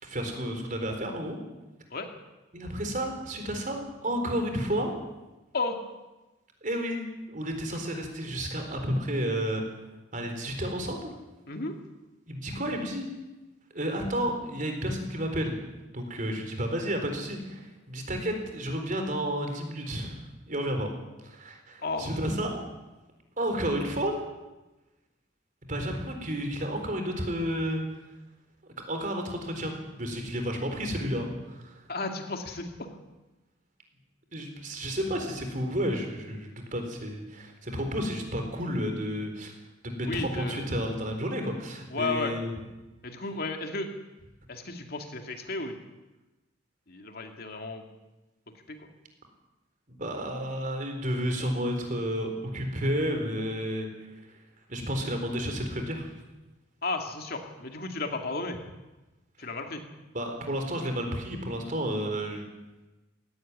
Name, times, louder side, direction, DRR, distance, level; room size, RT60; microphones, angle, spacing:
voice 1, 0.0-1.4 2.5-4.9 6.6-9.8 10.1-11.1 12.3-13.1 13.7-15.6 15.9-20.9 21.2-22.6 23.4-24.3 25.7-27.8 28.9-31.8 34.3-39.5 39.8-42.5 49.9-54.3 54.7-56.1 59.4-59.5 60.1-62.4, equal, 40° right, 4 dB, 4.1 m, -31 dB
voice 2, 21.8-22.2 31.9-32.9 40.0-40.6 41.9-42.3 43.0-43.9 44.5-45.8 46.9-47.8 48.7-48.8 56.8-58.6 59.4-59.8, left 3 dB, 50° left, 4 dB, 2.5 m, -33 dB
17.5 x 16.0 x 9.7 m, 1.1 s
head